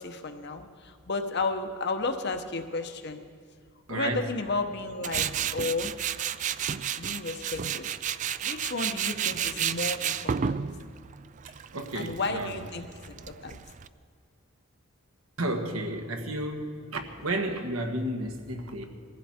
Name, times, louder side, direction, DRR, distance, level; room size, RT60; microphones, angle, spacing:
voice 1, 0.0-3.2 3.9-5.9 7.0-7.9 8.4-10.6 11.9-13.6, left 3 dB, 55° left, 6 dB, 1.0 m, -33 dB
voice 2, 3.9-4.3 11.7-12.6 15.4-18.8, right 1 dB, 90° right, 4 dB, 1.6 m, -32 dB
Tools, 5.0-13.9, right 8 dB, 35° right, 0.3 m, -32 dB
22.0 x 15.0 x 4.4 m, 2.1 s
head